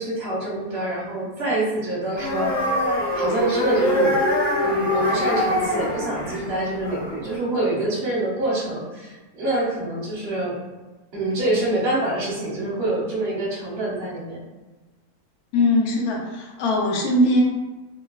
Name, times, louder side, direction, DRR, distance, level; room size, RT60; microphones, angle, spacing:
voice 1, 0.0-2.5 3.1-4.2 4.6-10.6 11.1-14.4, right 1 dB, 50° right, -5 dB, 0.9 m, -26 dB
sound 1, 2.2-7.4, left 1 dB, 70° left, 0.4 m, -23 dB
voice 2, 15.5-17.4, left 1 dB, 85° left, -1 dB, 1.1 m, -20 dB
2.8 x 2.3 x 2.3 m, 1.2 s
omnidirectional pair, 1.6 m